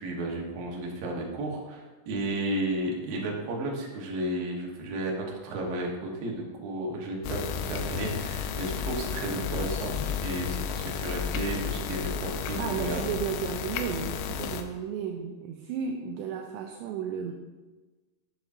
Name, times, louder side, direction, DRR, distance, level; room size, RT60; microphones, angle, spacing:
voice 1, 0.0-7.4 7.7-13.0, right 1 dB, 65° right, -1 dB, 2.5 m, -33 dB
sound 1, 7.2-14.6, left 7 dB, 80° left, 2.7 m, -32 dB
voice 2, 12.6-17.3, right 7 dB, 85° right, 3 dB, 2.5 m, -34 dB
8.3 x 7.7 x 2.6 m, 1.2 s
omnidirectional pair, 5.3 m